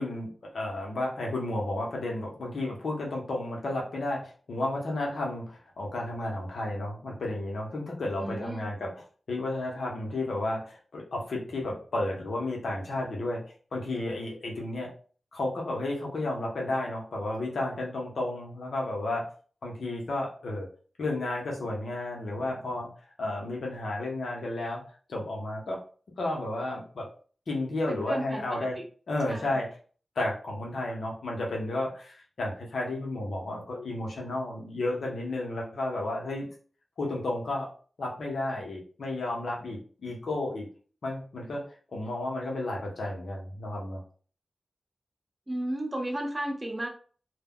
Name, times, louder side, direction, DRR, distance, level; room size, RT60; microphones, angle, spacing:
voice 1, 0.0-9.0 9.3-13.4 13.7-14.9 15.3-19.3 19.6-20.7 21.0-22.9 23.2-24.8 25.1-25.8 26.2-27.1 27.5-28.8 29.1-29.7 30.2-36.5 37.0-37.7 38.0-40.7 41.0-41.6 41.9-44.0, left 2 dB, 85° left, -1 dB, 0.8 m, -32 dB
voice 2, 8.2-8.7 27.9-28.8 29.3-29.6 45.5-46.9, right 1 dB, 30° right, 2 dB, 0.8 m, -33 dB
2.2 x 2.1 x 3.5 m, 0.42 s
cardioid pair, 45°, 0 cm